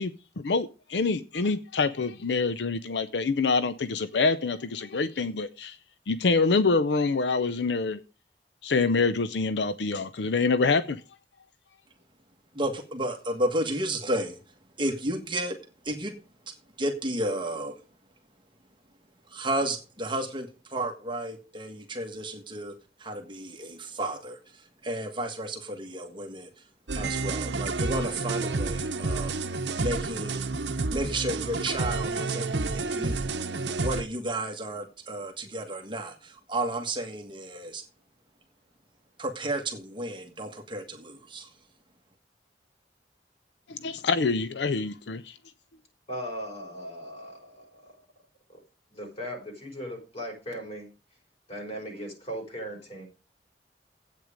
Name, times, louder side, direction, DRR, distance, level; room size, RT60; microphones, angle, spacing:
voice 1, 0.0-5.8 6.1-8.0 8.6-11.0 43.7-45.3, left 4 dB, 80° left, 0.6 m, -26 dB
voice 2, 12.5-14.4 14.8-15.6 15.8-16.1 16.8-17.8 19.3-22.7 23.0-26.5 26.9-29.3 29.7-30.5 30.9-37.8 39.2-41.5, right 1 dB, 30° right, 1.6 m, -32 dB
sound 1, 26.9-34.0, right 3 dB, 85° right, 0.9 m, -30 dB
voice 3, 46.1-47.9 48.9-50.9 51.5-53.1, equal, 35° left, 5.0 m, -38 dB
9.3 x 8.5 x 5.1 m
head